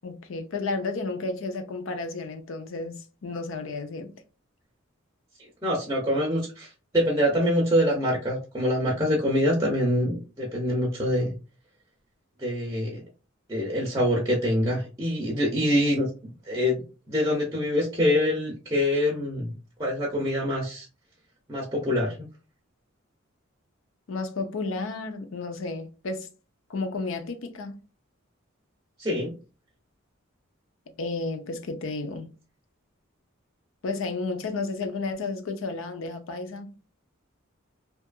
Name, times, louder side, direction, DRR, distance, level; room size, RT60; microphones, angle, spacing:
voice 1, 0.0-4.1 24.1-26.3 26.7-27.8 31.0-32.3 33.8-36.7, left 3 dB, 75° left, 0.5 m, -32 dB
voice 2, 5.6-11.3 12.4-13.0 13.5-16.8 17.1-19.5 19.8-20.9 21.5-22.2 29.0-29.3, equal, 15° right, 0.5 m, -25 dB
2.7 x 2.4 x 2.2 m
head